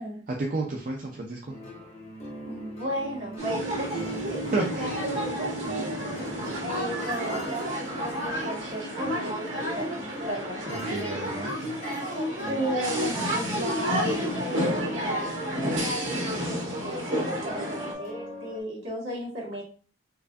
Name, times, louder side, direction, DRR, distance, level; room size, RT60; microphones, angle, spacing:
voice 1, 0.4-1.6 4.5-5.0 10.7-11.7, right 2 dB, 45° right, 0 dB, 0.5 m, -31 dB
sound 1, 1.5-18.6, left 1 dB, 35° left, 0.9 m, -43 dB
voice 2, 2.5-6.3 6.6-9.5 9.7-10.6 12.4-19.6, right 1 dB, 65° right, -4 dB, 1.7 m, -35 dB
sound 2, 3.4-17.9, equal, 90° right, 1.6 m, -30 dB
4.5 x 2.5 x 2.5 m, 0.40 s
head